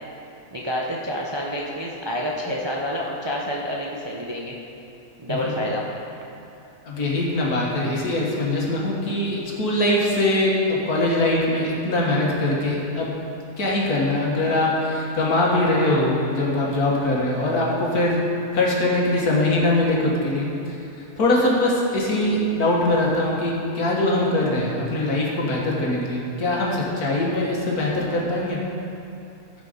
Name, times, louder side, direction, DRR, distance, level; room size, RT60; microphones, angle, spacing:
voice 1, 0.5-4.6 5.2-5.9, equal, 25° right, -3 dB, 0.6 m, -28 dB
voice 2, 6.8-13.1 13.6-18.2 18.5-20.8 21.2-28.6, left 1 dB, 80° left, -3 dB, 2.0 m, -22 dB
14.0 x 5.1 x 5.1 m, 2.7 s
omnidirectional pair, 1.6 m